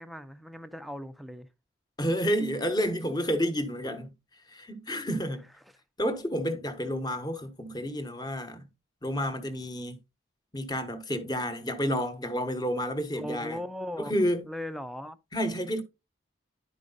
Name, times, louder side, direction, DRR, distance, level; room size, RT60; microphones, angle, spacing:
voice 1, 0.0-1.5 13.1-14.1 14.4-15.2, left 1 dB, ahead, 0.5 m, -38 dB
voice 2, 2.0-4.1 4.5-5.5 6.0-8.7 9.0-10.0 10.5-13.6 14.0-14.4 15.3-15.8, equal, 20° left, 1.1 m, -30 dB
11.0 x 5.1 x 3.9 m
head